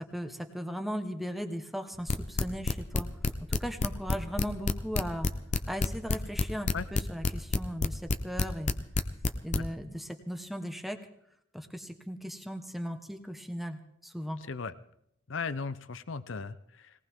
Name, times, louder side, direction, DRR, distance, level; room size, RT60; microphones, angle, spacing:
voice 1, 0.1-3.1 3.5-5.3 5.7-8.7 9.4-11.0 11.5-14.4, equal, ahead, 6 dB, 1.1 m, -37 dB
sound 1, 2.1-9.6, left 3 dB, 35° left, 0.7 m, -27 dB
voice 2, 15.3-17.0, left 4 dB, 75° left, 14 dB, 0.7 m, -37 dB
20.5 x 18.5 x 3.7 m, 0.75 s
head